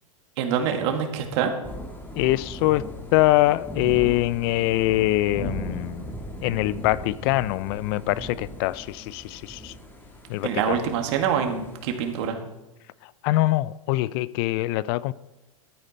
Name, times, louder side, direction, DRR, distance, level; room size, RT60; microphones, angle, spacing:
voice 1, 0.4-1.6 10.4-12.4, right 7 dB, 55° right, 2.0 m, -25 dB
Thunder / Rain, 1.6-12.3, equal, 10° left, 2.3 m, -38 dB
voice 2, 2.2-2.8 3.1-6.1 6.4-9.7 10.3-10.8 13.2-15.1, left 17 dB, 45° left, 0.4 m, -23 dB
13.0 x 8.8 x 4.3 m
hypercardioid pair, 120°, 18 cm